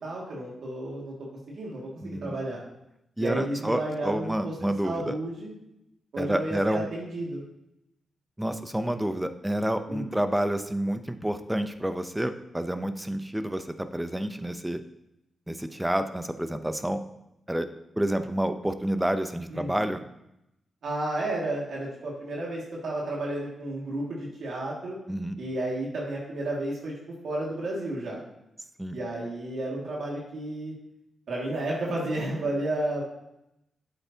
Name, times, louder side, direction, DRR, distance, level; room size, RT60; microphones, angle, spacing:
voice 1, 0.0-1.1 1.5-2.6 3.2-4.5 4.8-5.5 6.1-7.4 9.9-10.1 19.5-19.9 20.8-25.0 25.4-26.9 27.2-28.2 28.9-30.7 31.3-33.0, right 1 dB, 75° right, -4 dB, 2.2 m, -32 dB
voice 2, 2.0-2.4 3.2-5.1 6.2-6.9 8.4-14.8 15.5-17.0 17.5-17.7 18.0-20.0 25.1-25.4 28.8-29.0, right 1 dB, 10° right, 9 dB, 0.7 m, -29 dB
9.1 x 7.8 x 2.9 m, 0.84 s
cardioid pair, 60°, 0 cm